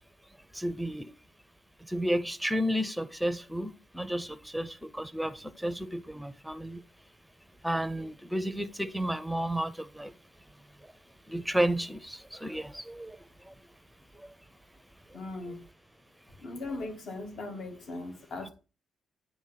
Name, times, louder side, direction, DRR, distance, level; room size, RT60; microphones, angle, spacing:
voice 1, 0.5-1.1 1.9-6.8 7.6-10.1 11.3-13.2, equal, ahead, 0.7 m, -32 dB
voice 2, 15.1-15.6 16.4-18.5, left 2 dB, 60° left, 1.7 m, -39 dB
9.0 x 3.0 x 5.7 m
cardioid pair, 90°, 0 cm